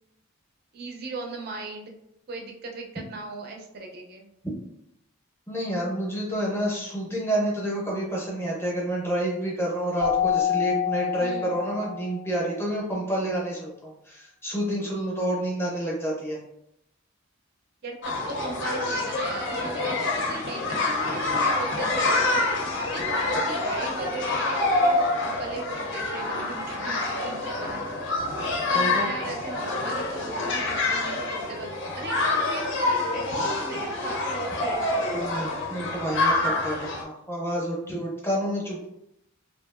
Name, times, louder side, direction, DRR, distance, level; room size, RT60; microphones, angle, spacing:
voice 1, 0.7-1.9 2.3-4.3 11.2-11.5 17.8-27.8 28.7-35.3, right 3 dB, 45° right, 2 dB, 0.4 m, -38 dB
voice 2, 5.5-16.4 28.7-29.1 35.1-38.9, right 1 dB, 10° left, -3 dB, 0.6 m, -29 dB
Keyboard (musical), 10.0-12.3, left 10 dB, 85° right, 0.6 m, -27 dB
sound 1, 18.0-37.0, left 2 dB, 55° left, 0.4 m, -27 dB
2.7 x 2.4 x 2.3 m, 0.79 s
head